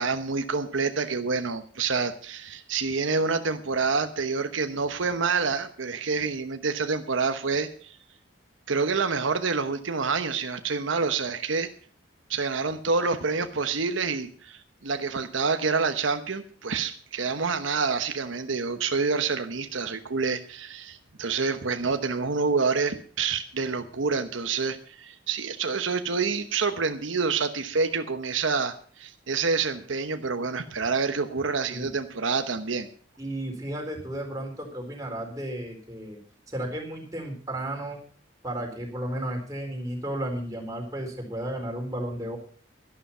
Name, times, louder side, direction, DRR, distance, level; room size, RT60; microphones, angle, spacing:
voice 1, 0.0-8.0 8.7-11.7 12.3-32.9, right 4 dB, 90° right, 8 dB, 1.0 m, -27 dB
voice 2, 33.2-36.2 36.5-38.0 38.4-42.4, right 1 dB, 20° right, 1 dB, 3.8 m, -33 dB
12.0 x 11.5 x 5.5 m, 0.43 s
head